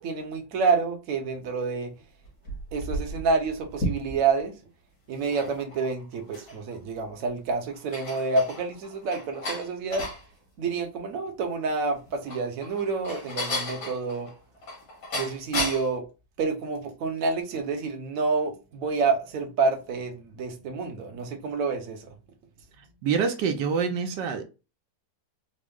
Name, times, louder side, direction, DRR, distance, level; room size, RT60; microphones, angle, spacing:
voice 1, 0.0-1.9 2.7-4.5 5.1-10.1 10.6-14.3 15.1-16.1 16.4-22.1, right 4 dB, 60° right, 1.1 m, -28 dB
sound 1, 2.2-4.4 5.1-6.7 7.2-7.3 7.7-10.2 12.0-16.0, left 1 dB, 60° left, 2.0 m, -34 dB
voice 2, 23.0-24.4, right 6 dB, 80° right, 1.2 m, -26 dB
4.3 x 2.0 x 3.6 m
omnidirectional pair, 1.9 m